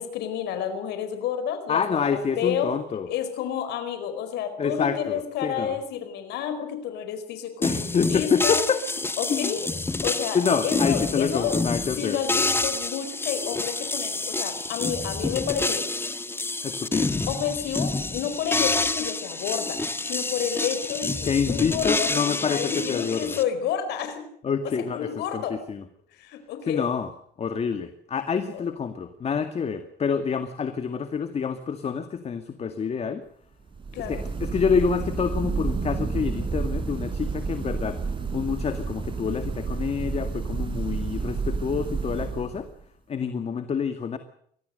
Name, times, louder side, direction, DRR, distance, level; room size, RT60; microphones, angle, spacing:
voice 1, 0.0-1.8 2.1-2.7 3.1-8.6 9.2-9.6 10.0-11.6 12.0-15.9 17.3-24.3 24.9-25.5 26.1-26.9 28.5-28.6 33.9-34.3, left 8 dB, 80° left, 9 dB, 4.8 m, -30 dB
voice 2, 1.7-3.1 4.6-5.8 7.6-8.8 9.3-9.5 10.3-12.2 16.6-17.3 21.2-23.4 24.4-25.8 26.7-27.1 27.4-33.2 34.0-42.7 43.1-44.2, left 6 dB, 40° left, 9 dB, 2.1 m, -27 dB
sound 1, 7.6-23.4, left 2 dB, 15° left, 1.4 m, -28 dB
sound 2, 33.7-42.8, right 4 dB, 30° right, 5.2 m, -30 dB
24.5 x 18.5 x 6.6 m, 0.64 s
cardioid pair, 110°, 17 cm